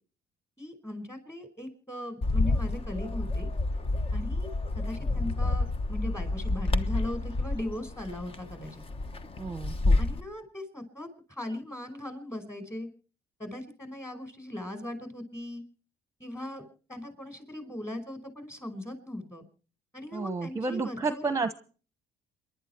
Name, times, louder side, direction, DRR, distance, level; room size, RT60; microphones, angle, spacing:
voice 1, 0.6-3.5 4.1-4.5 4.7-8.8 10.0-12.9 13.4-15.6 16.2-19.4 19.9-21.2, left 1 dB, 15° left, 8 dB, 5.1 m, -39 dB
Bird, 2.2-10.2, left 2 dB, 35° left, 1.1 m, -29 dB
voice 2, 9.4-10.0 20.1-21.5, right 4 dB, 20° right, 10 dB, 1.0 m, -31 dB
28.0 x 11.5 x 4.5 m, 0.40 s
cardioid pair, 110°, 17 cm